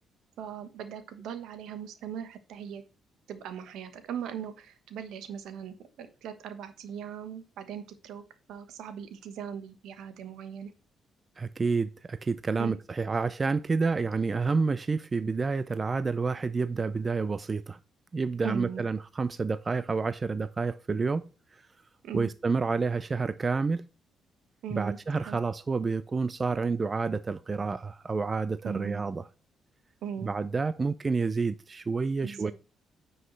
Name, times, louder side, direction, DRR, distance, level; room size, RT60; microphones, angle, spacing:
voice 1, 0.4-2.8 3.3-8.2 8.5-10.7 12.6-12.7 18.4-18.8 22.0-22.3 24.6-25.4 28.6-29.0 30.0-30.3 32.2-32.5, right 8 dB, 85° right, 1.2 m, -39 dB
voice 2, 11.4-17.8 18.1-21.2 22.1-23.8 24.7-29.2 30.2-32.5, right 4 dB, 30° right, 0.4 m, -29 dB
9.7 x 5.4 x 3.2 m
cardioid pair, 90°, 0 cm